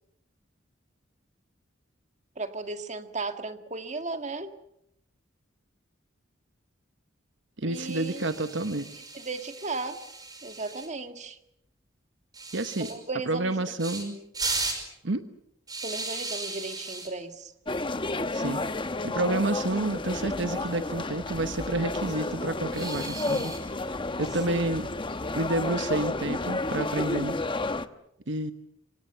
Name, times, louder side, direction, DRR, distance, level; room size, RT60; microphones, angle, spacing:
voice 1, 2.4-4.5 7.6-8.3 9.1-10.0 10.4-11.4 12.8-13.6 14.0-14.2 15.8-17.5 24.5-24.7, right 3 dB, 35° right, 8 dB, 1.9 m, -35 dB
voice 2, 7.6-8.9 12.5-12.9 13.3-14.2 15.0-15.2 18.3-18.7 19.0-23.5 24.2-24.9 25.3-27.3 28.3-28.5, right 2 dB, 65° right, 9 dB, 1.1 m, -29 dB
sound 1, 7.7-10.9 12.3-12.9 13.8-14.0 14.3-14.8 15.7-17.1 18.3-18.5 18.8-18.9 19.2-19.3 20.6-21.1 22.7-23.6, right 3 dB, 20° right, 5.4 m, -36 dB
sound 2, 17.7-27.9, left 2 dB, 25° left, 1.0 m, -31 dB
27.5 x 25.0 x 7.0 m, 0.77 s
head